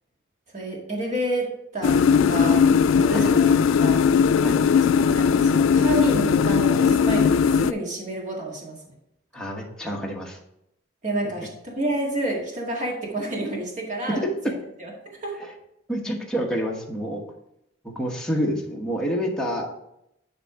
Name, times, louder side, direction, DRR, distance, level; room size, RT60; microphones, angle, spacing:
voice 1, 0.5-2.6 2.9-4.1 5.0-8.8 11.0-14.2 14.5-14.6 14.8-14.9 15.2-15.3, right 1 dB, 40° right, -1 dB, 1.9 m, -29 dB
sound 1, 1.8-7.7, left 6 dB, 80° left, 0.3 m, -19 dB
voice 2, 9.3-10.4 14.1-14.3 15.4-15.5 15.9-17.2 17.8-19.8, equal, 5° left, -2 dB, 1.2 m, -28 dB
10.0 x 3.4 x 4.8 m, 0.80 s
head